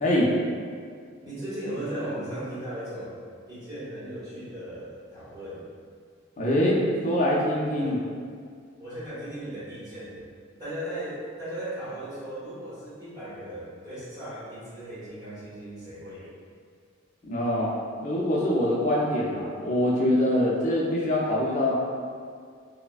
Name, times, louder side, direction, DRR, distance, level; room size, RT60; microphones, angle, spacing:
voice 1, 1.2-3.1 3.5-5.6 7.7-8.0 8.8-10.2 10.6-16.3, right 1 dB, 20° right, -11 dB, 1.0 m, -37 dB
voice 2, 6.4-6.8 7.0-8.0 17.2-17.7 18.0-21.7, left 1 dB, 40° left, -4 dB, 0.5 m, -24 dB
3.2 x 2.1 x 2.3 m, 2.1 s
head